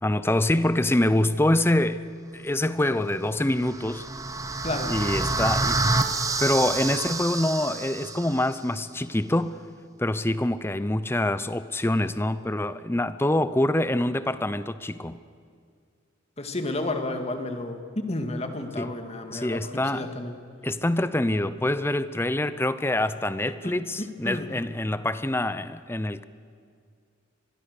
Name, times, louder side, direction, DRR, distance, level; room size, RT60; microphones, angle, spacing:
voice 1, 0.0-2.1 2.3-4.1 4.9-5.8 6.4-9.6 10.0-15.2 18.8-18.9 19.3-20.1 20.6-26.2, left 1 dB, 10° left, 14 dB, 0.6 m, -25 dB
sound 1, 3.4-8.5, right 3 dB, 15° right, 1.0 m, -28 dB
voice 2, 4.6-5.0 16.4-20.3 23.6-24.5, left 2 dB, 30° left, 6 dB, 1.9 m, -32 dB
25.0 x 22.0 x 6.7 m, 2.2 s
head